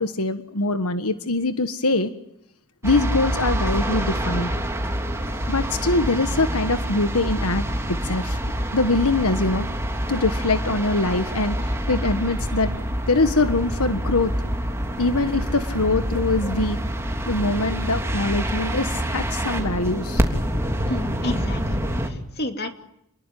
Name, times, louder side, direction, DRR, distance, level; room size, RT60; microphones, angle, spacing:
voice 1, 0.0-2.1 2.8-4.5 5.5-7.6 8.0-8.4 8.7-9.7 10.1-12.8 13.1-14.3 15.0-16.8 17.3-20.2, left 2 dB, 85° left, 9 dB, 1.6 m, -23 dB
sound 1, 2.8-22.1, equal, 10° right, 3.2 m, -26 dB
voice 2, 20.9-22.7, left 1 dB, 45° left, 6 dB, 2.8 m, -30 dB
28.5 x 21.5 x 9.4 m, 0.78 s
head